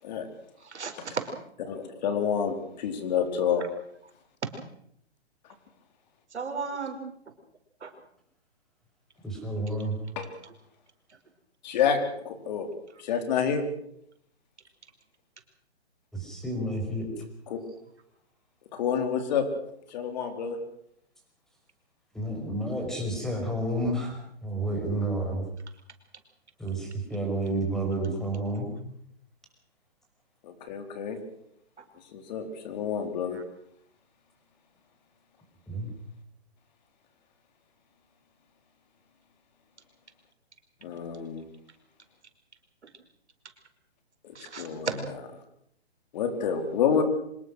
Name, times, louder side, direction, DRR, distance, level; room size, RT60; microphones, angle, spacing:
voice 1, 0.6-1.2 4.4-4.5 6.3-7.0 7.8-7.9 31.8-31.9 33.3-33.4 42.8-42.9 44.3-45.0, right 5 dB, 85° right, 7 dB, 5.0 m, -34 dB
voice 2, 1.7-3.6 10.2-10.3 11.6-12.0 12.2-12.7 13.0-13.6 17.5-17.6 18.7-19.4 19.9-20.6 30.4-31.2 32.0-33.4 40.8-41.5 44.2-44.9 46.1-47.0, left 7 dB, 40° left, 7 dB, 4.0 m, -28 dB
voice 3, 9.2-10.0 16.1-17.1 22.1-25.5 26.6-28.7 35.7-35.9, right 1 dB, ahead, 2 dB, 5.5 m, -30 dB
25.5 x 20.0 x 6.4 m, 0.71 s
hypercardioid pair, 150°, 33 cm